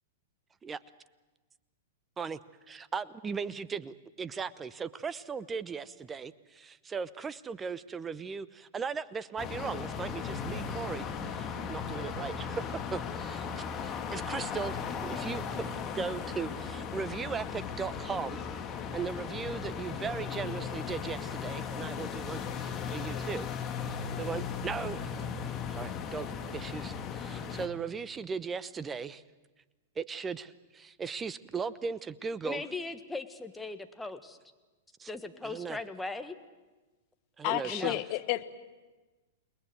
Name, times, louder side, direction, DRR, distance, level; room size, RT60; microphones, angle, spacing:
voice 1, 2.7-15.6 15.9-18.4 18.9-23.5 23.9-25.1 25.7-26.3 26.5-29.2 30.0-32.6 35.0-35.1 35.4-35.8 37.4-38.0, right 5 dB, 20° right, 16 dB, 0.9 m, -38 dB
sound 1, 9.4-27.7, left 6 dB, 30° left, 2.2 m, -37 dB
voice 2, 32.4-34.4 35.1-36.3 37.6-38.0, left 3 dB, 5° left, 7 dB, 1.6 m, -38 dB
voice 3, 37.4-38.4, left 17 dB, 45° left, 11 dB, 1.4 m, -31 dB
29.0 x 20.5 x 8.0 m, 1.2 s
figure-of-eight pair, 105°, 0 cm